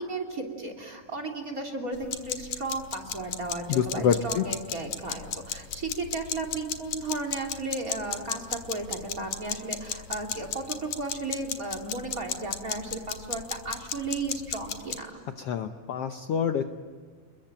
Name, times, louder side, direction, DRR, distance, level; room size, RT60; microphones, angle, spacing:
voice 1, 0.0-15.1, right 2 dB, 25° right, 6 dB, 3.2 m, -34 dB
sound 1, 1.9-15.0, left 9 dB, 85° left, 3.2 m, -34 dB
voice 2, 3.7-4.4 15.4-16.6, left 7 dB, 65° left, 7 dB, 1.6 m, -26 dB
30.0 x 22.0 x 9.0 m, 1.5 s
omnidirectional pair, 3.6 m